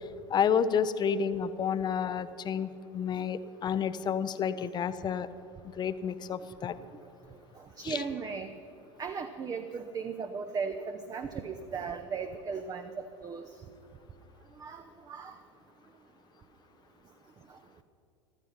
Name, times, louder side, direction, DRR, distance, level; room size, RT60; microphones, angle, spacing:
voice 1, 0.3-5.3 5.8-6.7 7.8-8.0, left 7 dB, 30° left, 14 dB, 0.7 m, -30 dB
voice 2, 7.8-8.5 9.0-13.5 14.6-15.3, right 5 dB, 25° right, 7 dB, 0.7 m, -37 dB
14.5 x 13.5 x 5.7 m, 2.8 s
figure-of-eight pair, 80°, 15 cm